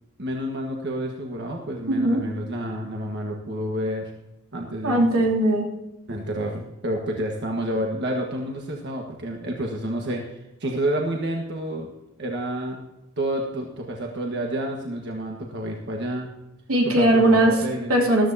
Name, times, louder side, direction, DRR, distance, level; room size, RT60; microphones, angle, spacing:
voice 1, 0.2-4.1 4.5-5.1 6.1-11.9 12.2-12.8 13.2-16.3 16.8-17.9, right 1 dB, 55° right, 1 dB, 1.5 m, -29 dB
voice 2, 1.9-2.2 4.8-5.7 16.7-17.5 17.9-18.3, right 1 dB, 90° right, 0 dB, 3.0 m, -19 dB
14.5 x 13.0 x 2.8 m, 0.97 s
head